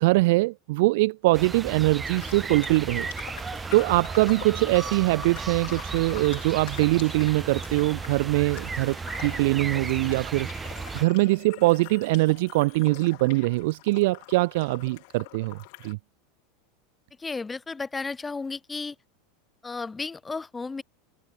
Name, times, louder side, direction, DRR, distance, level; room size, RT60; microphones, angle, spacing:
voice 1, 0.0-3.1 3.7-16.0, right 22 dB, 65° right, 0.3 m, -23 dB
sound 1, 1.3-11.1, right 4 dB, 15° right, 0.6 m, -35 dB
sound 2, 2.1-15.9, left 33 dB, 60° left, 4.1 m, -45 dB
sound 3, 6.0-12.9, left 18 dB, 45° left, 7.5 m, -56 dB
voice 2, 17.2-19.0 19.6-20.8, left 4 dB, 10° left, 2.2 m, -33 dB
supercardioid pair, 135°, 0 cm